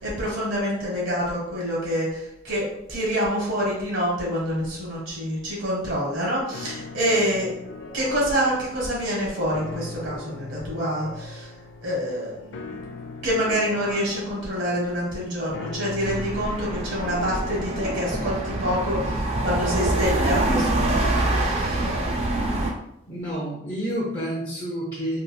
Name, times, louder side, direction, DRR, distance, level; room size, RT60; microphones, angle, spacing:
voice 1, 0.0-7.5 7.9-11.5 11.8-12.8 13.2-22.0, equal, 70° right, -5 dB, 1.4 m, -27 dB
sound 1, 6.5-18.5, left 3 dB, 65° left, 0.3 m, -39 dB
sound 2, 16.0-22.7, right 2 dB, 30° right, 0.4 m, -25 dB
voice 2, 23.1-25.2, equal, 20° left, -6 dB, 0.6 m, -29 dB
3.8 x 2.4 x 2.2 m, 0.79 s
head